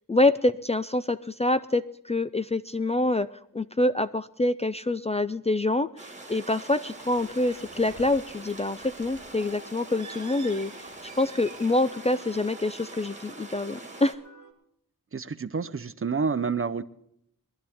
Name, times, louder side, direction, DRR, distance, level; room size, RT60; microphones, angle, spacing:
voice 1, 0.1-3.3 3.5-14.2, left 2 dB, 20° left, 13 dB, 0.4 m, -26 dB
sound 1, 6.0-14.2, right 2 dB, 20° right, 1.8 m, -44 dB
sound 2, 6.2-14.5, right 1 dB, 60° left, 3.1 m, -51 dB
Bird, 6.9-11.9, right 5 dB, 55° right, 1.3 m, -50 dB
voice 2, 15.1-16.8, right 5 dB, 40° right, 13 dB, 0.7 m, -28 dB
22.5 x 11.0 x 3.6 m, 0.72 s
wide cardioid pair, 70°, 35 cm